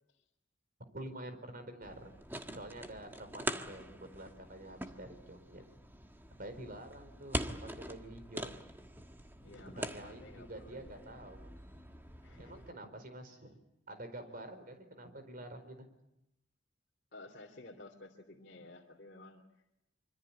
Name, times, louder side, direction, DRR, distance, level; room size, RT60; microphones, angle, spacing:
voice 1, 0.9-2.1 2.5-5.6 6.4-8.6 9.4-11.5 12.4-13.6 13.9-15.9, right 1 dB, 50° right, 8 dB, 4.5 m, -48 dB
sound 1, 1.8-12.7, right 1 dB, 10° right, 1.5 m, -44 dB
voice 2, 9.4-11.1 12.2-12.6 17.1-19.4, left 2 dB, 55° left, -1 dB, 3.1 m, -53 dB
25.5 x 25.5 x 8.9 m, 0.86 s
head